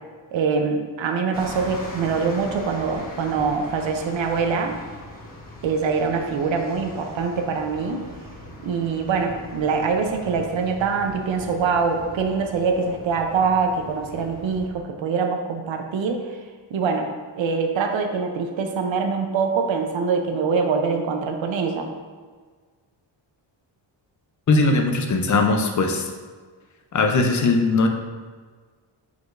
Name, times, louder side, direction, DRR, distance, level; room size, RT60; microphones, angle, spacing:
voice 1, 0.3-4.8 5.6-8.0 8.6-16.4 16.7-17.1 17.4-21.9, right 5 dB, 75° right, 4 dB, 0.8 m, -24 dB
sound 1, 1.3-14.7, left 1 dB, 20° left, 1.2 m, -40 dB
voice 2, 24.5-26.1 26.9-27.9, left 3 dB, 40° left, 4 dB, 0.6 m, -19 dB
8.1 x 4.9 x 2.5 m, 1.5 s
wide cardioid pair, 180°, 46 cm